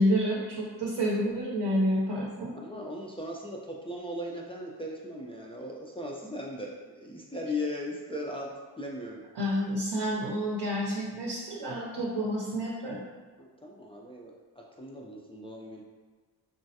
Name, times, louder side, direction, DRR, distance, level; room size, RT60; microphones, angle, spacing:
voice 1, 0.0-2.5 9.3-13.0, equal, 65° right, -3 dB, 0.7 m, -29 dB
voice 2, 2.6-3.6 3.9-6.7 7.0-8.5 8.8-9.2 13.4-14.3 14.8-15.8, left 1 dB, 15° left, -3 dB, 0.3 m, -37 dB
3.0 x 2.3 x 2.7 m, 1.4 s
cardioid pair, 60°, 44 cm